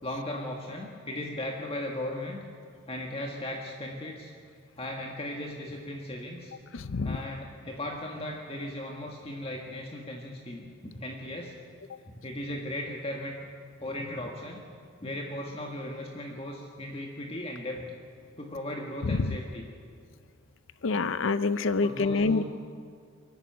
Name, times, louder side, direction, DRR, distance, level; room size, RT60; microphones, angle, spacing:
voice 1, 0.0-2.4 2.9-4.3 4.8-6.5 7.0-11.5 12.0-13.5 13.8-14.6 15.0-17.8 18.4-19.7 21.8-22.4, left 1 dB, 30° left, 0 dB, 1.6 m, -37 dB
voice 2, 6.7-7.2 19.2-19.3 20.8-22.4, left 3 dB, 70° left, 13 dB, 0.6 m, -26 dB
23.5 x 14.0 x 9.2 m, 2.2 s
head